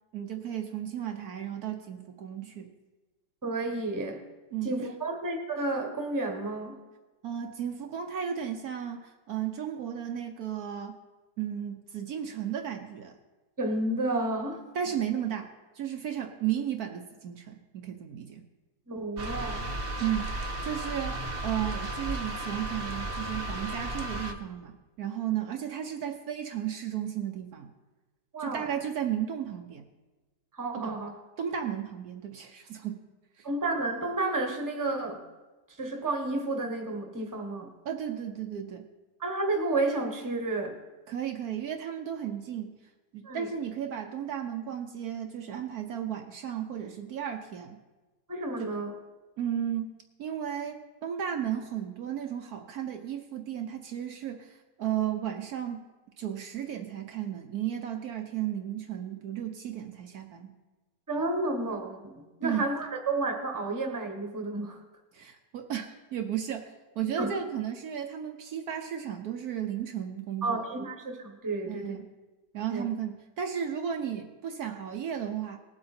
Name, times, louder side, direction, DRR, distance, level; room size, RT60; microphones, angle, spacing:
voice 1, 0.1-2.7 4.5-4.7 7.2-11.0 11.4-13.2 14.7-18.4 20.0-27.7 28.4-29.8 30.7-31.0 31.4-33.0 33.4-33.5 37.8-38.9 41.1-42.8 43.1-47.8 48.6-48.7 49.4-49.9 50.2-55.8 56.2-60.5 62.4-62.7 65.1-70.7 71.7-72.1 72.5-75.6, right 9 dB, 65° right, 5 dB, 1.2 m, -34 dB
voice 2, 3.4-4.2 4.6-6.8 13.6-14.6 18.9-19.7 28.3-28.7 30.5-31.1 33.4-35.2 35.8-37.7 39.2-40.8 43.2-43.5 48.3-48.9 61.1-64.8 67.2-67.3 70.4-72.0 72.7-72.8, right 2 dB, 10° right, 3 dB, 1.2 m, -31 dB
sound 1, 19.2-24.3, right 1 dB, 45° right, 0.8 m, -34 dB
18.5 x 7.7 x 4.3 m, 1.2 s
omnidirectional pair, 1.8 m